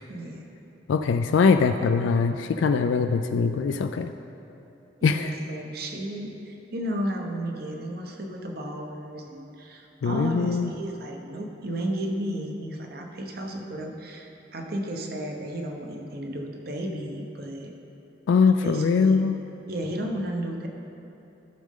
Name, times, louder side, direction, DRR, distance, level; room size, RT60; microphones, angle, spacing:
voice 1, 0.1-0.5 5.0-17.7 18.6-19.2 19.7-20.7, right 1 dB, 55° right, 2 dB, 0.9 m, -33 dB
voice 2, 0.9-4.1 5.0-5.3 10.0-10.7 18.3-19.3, left 5 dB, 80° left, 7 dB, 0.3 m, -22 dB
13.5 x 6.3 x 3.7 m, 3.0 s
head